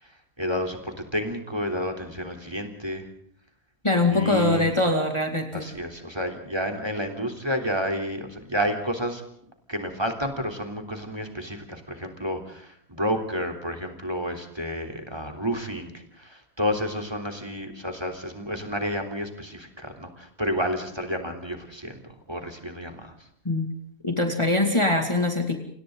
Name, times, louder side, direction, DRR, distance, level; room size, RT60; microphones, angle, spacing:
voice 1, 0.0-3.1 4.1-4.7 5.5-9.2 9.7-23.2, equal, 15° right, 6 dB, 3.4 m, -30 dB
voice 2, 3.8-5.7 23.4-23.7 24.0-25.6, left 2 dB, 20° left, 4 dB, 2.4 m, -23 dB
30.0 x 27.0 x 3.9 m, 0.64 s
omnidirectional pair, 1.5 m